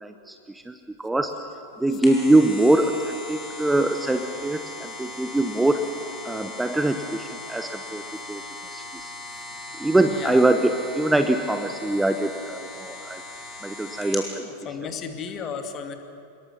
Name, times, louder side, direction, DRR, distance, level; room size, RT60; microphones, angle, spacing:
voice 1, 0.0-1.3 1.8-5.8 6.2-8.0 8.3-8.4 8.7-9.1 9.8-13.2 13.6-14.4, right 2 dB, 5° right, 8 dB, 1.0 m, -23 dB
sound 1, 1.7-14.3 14.8-14.9, left 2 dB, 15° left, 4.9 m, -39 dB
voice 2, 10.0-10.4 14.4-16.0, left 6 dB, 30° left, 6 dB, 2.3 m, -35 dB
26.5 x 21.5 x 7.1 m, 2.6 s
figure-of-eight pair, 90°, 0 cm